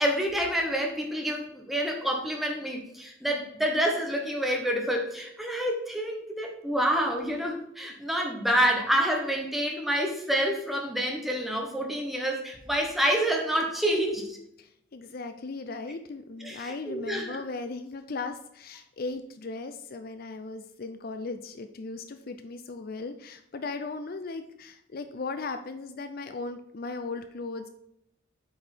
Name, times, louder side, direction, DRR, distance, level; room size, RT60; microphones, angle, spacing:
voice 1, 0.0-14.4 16.4-17.4, equal, ahead, 1 dB, 1.2 m, -28 dB
voice 2, 14.6-27.7, left 3 dB, 50° left, 9 dB, 0.5 m, -37 dB
7.9 x 5.3 x 4.5 m, 0.76 s
head